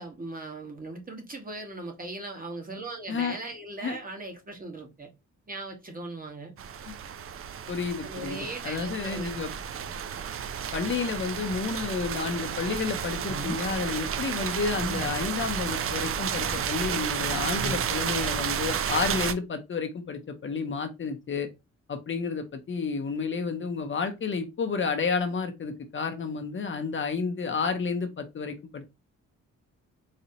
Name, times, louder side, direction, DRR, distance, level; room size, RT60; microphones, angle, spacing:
voice 1, 0.0-5.1 5.5-6.5 8.0-9.4, right 2 dB, 30° right, 1.2 m, -39 dB
sound 1, 6.6-19.3, right 8 dB, 50° right, 0.4 m, -32 dB
voice 2, 7.7-8.4 8.6-9.5 10.7-21.5 21.9-28.8, left 5 dB, 40° left, 0.7 m, -31 dB
sound 2, 13.3-13.6 14.7-15.3 16.2-16.6 17.5-17.9, equal, 5° right, 0.7 m, -37 dB
4.1 x 2.7 x 2.7 m
cardioid pair, 105°, 30 cm